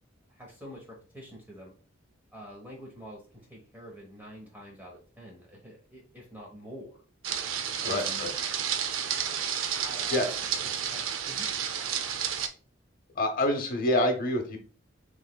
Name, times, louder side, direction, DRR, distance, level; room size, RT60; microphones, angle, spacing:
voice 1, 0.3-1.7 2.3-7.0 7.8-8.3 9.8-10.3 10.9-11.5, equal, 10° right, -2 dB, 1.0 m, -46 dB
sound 1, 7.2-12.5, right 8 dB, 75° right, 0.5 m, -31 dB
voice 2, 7.8-8.3 10.1-10.3 13.1-14.6, left 1 dB, 45° left, 5 dB, 0.8 m, -27 dB
6.2 x 3.2 x 2.2 m, 0.39 s
head